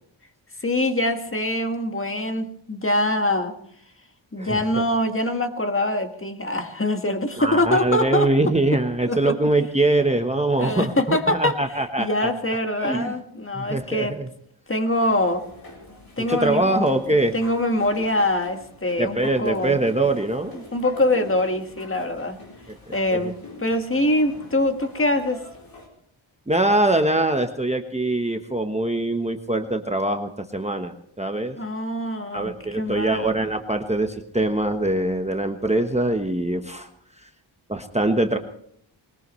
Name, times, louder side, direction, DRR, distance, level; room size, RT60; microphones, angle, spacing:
voice 1, 0.6-3.6 4.3-8.3 9.1-9.3 10.6-14.2 14.7-15.4 16.2-16.8 17.3-19.7 20.7-22.4 22.9-25.4 31.6-33.3, left 1 dB, 25° left, 6 dB, 1.7 m, -24 dB
voice 2, 7.4-12.3 12.8-13.1 13.5-14.3 16.3-17.3 19.0-20.6 23.1-23.3 26.5-31.6 32.3-36.9 37.7-38.4, right 2 dB, 15° right, 5 dB, 1.1 m, -23 dB
sound 1, 14.9-25.9, left 2 dB, 45° left, 4.0 m, -44 dB
21.0 x 19.5 x 3.2 m, 0.67 s
wide cardioid pair, 90°, 48 cm